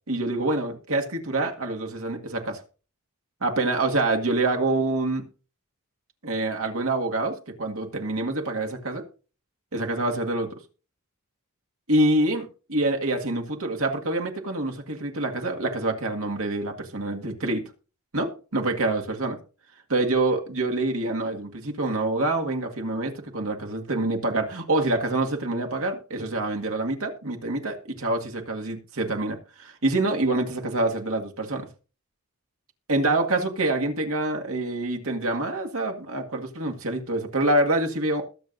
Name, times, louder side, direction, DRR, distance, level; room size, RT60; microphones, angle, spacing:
voice 1, 0.1-2.6 3.4-5.3 6.2-9.1 9.7-10.5 11.9-17.7 18.1-19.4 19.9-31.7 32.9-38.2, right 2 dB, 75° right, 1.9 m, -26 dB
21.0 x 7.5 x 2.6 m
head